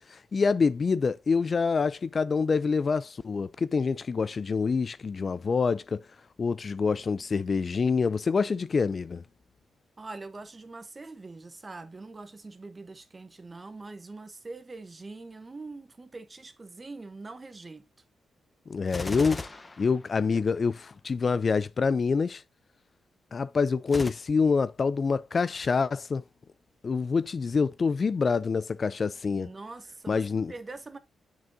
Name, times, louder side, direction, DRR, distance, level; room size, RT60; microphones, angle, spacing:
voice 1, 0.1-6.0 6.4-9.2 18.7-19.4 19.8-22.4 23.3-26.2 26.8-29.5 30.1-30.5, left 5 dB, 40° left, 0.3 m, -26 dB
voice 2, 10.0-17.9 29.4-31.0, right 3 dB, 25° right, 0.9 m, -43 dB
Gunshot gunfire, 18.9-20.6 23.9-24.1, left 2 dB, 20° left, 0.8 m, -37 dB
7.0 x 6.1 x 2.6 m
cardioid pair, 100°, 0 cm